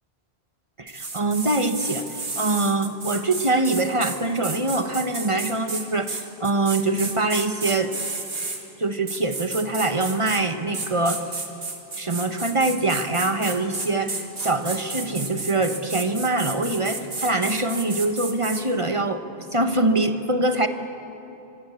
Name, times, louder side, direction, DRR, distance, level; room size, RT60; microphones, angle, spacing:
voice 1, 0.8-7.9 8.8-11.2 12.0-20.7, right 2 dB, 30° right, 8 dB, 1.3 m, -24 dB
sound 1, 0.9-8.6 9.1-10.4 10.7-18.6, right 3 dB, 60° right, 2.4 m, -32 dB
24.5 x 22.5 x 8.4 m, 3.0 s
omnidirectional pair, 1.1 m